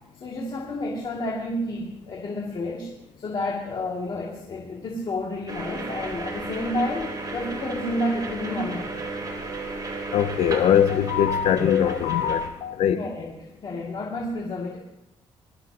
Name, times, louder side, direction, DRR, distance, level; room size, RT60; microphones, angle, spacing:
voice 1, 0.2-2.9 3.2-8.9 13.0-13.3 13.6-14.8, left 1 dB, 50° left, 2.4 m, -30 dB
sound 1, 5.5-12.5, right 2 dB, 35° right, 3.2 m, -34 dB
voice 2, 10.1-13.0, left 9 dB, 90° left, 0.7 m, -21 dB
21.5 x 13.0 x 2.9 m
cardioid pair, 105°, 11 cm